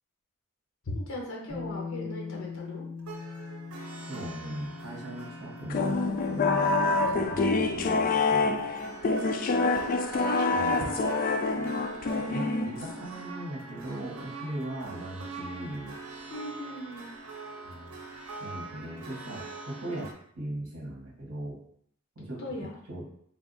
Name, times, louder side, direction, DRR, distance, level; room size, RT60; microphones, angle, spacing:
voice 1, 0.9-2.8 9.0-9.2 9.5-9.9 10.2-11.0 11.3-11.4 16.3-17.1 22.4-22.7, left 1 dB, 65° left, -2 dB, 0.9 m, -38 dB
Bass guitar, 1.5-7.7, left 5 dB, 35° right, 1.1 m, -42 dB
sound 1, 3.0-20.1, right 3 dB, 85° right, 0.7 m, -44 dB
voice 2, 4.1-8.7 10.5-10.8 12.2-15.9 17.6-17.9 18.4-20.1 20.3-21.6 22.2-23.0, right 1 dB, 60° right, -5 dB, 1.1 m, -38 dB
sound 2, 5.7-13.1, left 3 dB, 40° left, 0.3 m, -26 dB
3.4 x 2.4 x 3.8 m, 0.67 s
head